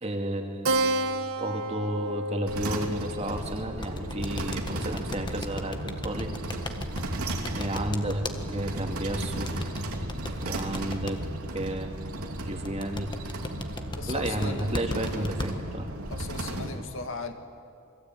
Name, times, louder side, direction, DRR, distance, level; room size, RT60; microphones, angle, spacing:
voice 1, 0.0-6.3 7.5-9.5 10.4-11.2 11.5-13.1 14.1-15.9, right 1 dB, 30° right, 4 dB, 2.5 m, -32 dB
Keyboard (musical), 0.6-5.6, right 2 dB, 65° right, 1.4 m, -32 dB
sound 1, 2.5-16.7, right 1 dB, 85° right, 3.0 m, -34 dB
sound 2, 3.8-8.3 9.4-11.1 12.6-15.5, left 2 dB, 20° left, 1.5 m, -36 dB
voice 2, 14.0-15.4 16.1-17.3, left 3 dB, 60° left, 6 dB, 2.1 m, -38 dB
28.5 x 23.0 x 9.2 m, 2.4 s
head